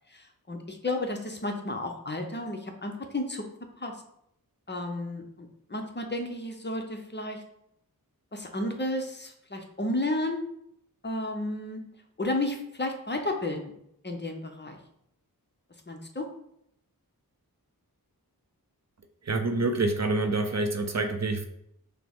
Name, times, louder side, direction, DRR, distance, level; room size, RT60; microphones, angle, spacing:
voice 1, 0.1-3.4 3.8-3.9 4.7-7.4 8.3-10.4 11.0-11.8 12.2-13.7 14.0-14.8 15.9-16.3, left 1 dB, 30° left, 3 dB, 0.6 m, -32 dB
voice 2, 19.2-21.5, right 2 dB, 45° right, 7 dB, 0.5 m, -27 dB
5.7 x 2.0 x 3.5 m, 0.74 s
wide cardioid pair, 60°, 37 cm